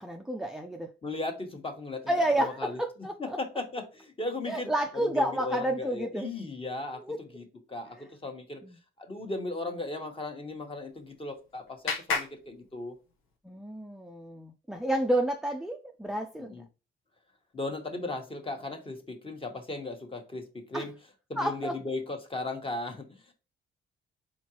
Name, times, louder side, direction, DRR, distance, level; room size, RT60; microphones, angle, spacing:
voice 1, 0.0-0.9 2.1-3.4 4.5-6.3 6.9-7.2 8.6-8.8 13.4-16.6 20.7-20.9 21.4-21.7, right 1 dB, ahead, 0.4 m, -30 dB
voice 2, 1.0-2.8 3.2-8.6 9.0-12.9 16.5-16.6 17.5-20.9 21.3-23.3, left 2 dB, 25° left, 1.2 m, -37 dB
Clapping, 10.7-13.4, left 5 dB, 85° left, 1.1 m, -36 dB
4.3 x 3.8 x 2.9 m
cardioid pair, 90°, 20 cm